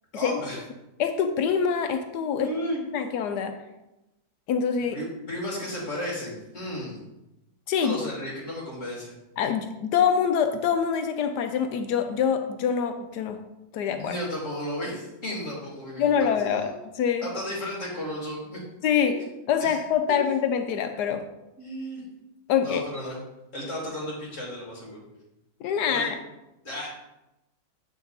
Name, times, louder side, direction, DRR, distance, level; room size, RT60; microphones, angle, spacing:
voice 1, 0.1-0.6 2.4-2.8 4.9-7.0 7.8-9.1 13.9-16.7 17.2-18.6 19.6-19.8 21.6-22.0 22.6-23.2 23.5-25.0 25.9-26.1 26.6-26.9, equal, 45° left, -4 dB, 2.9 m, -34 dB
voice 2, 1.0-2.5 2.9-3.5 4.5-5.0 7.7-8.0 9.4-13.4 13.7-14.2 16.0-16.7 17.0-17.3 18.8-19.1 19.5-21.2 22.5-22.8 25.6-26.2, left 7 dB, 80° left, 7 dB, 1.2 m, -25 dB
7.7 x 5.1 x 4.0 m, 0.94 s
omnidirectional pair, 1.8 m